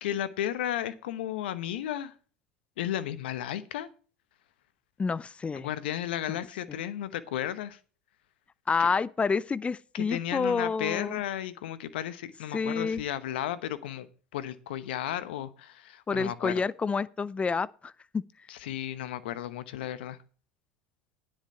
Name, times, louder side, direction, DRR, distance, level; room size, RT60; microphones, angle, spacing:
voice 1, 0.0-2.1 2.8-3.9 5.5-7.8 8.8-8.9 9.9-16.5 18.5-20.2, left 11 dB, 80° left, 1.0 m, -34 dB
voice 2, 5.0-5.7 6.7-6.8 8.7-11.2 12.5-13.0 16.1-18.2, left 5 dB, 20° left, 0.5 m, -29 dB
10.0 x 8.9 x 4.3 m
hypercardioid pair, 80°, 6 cm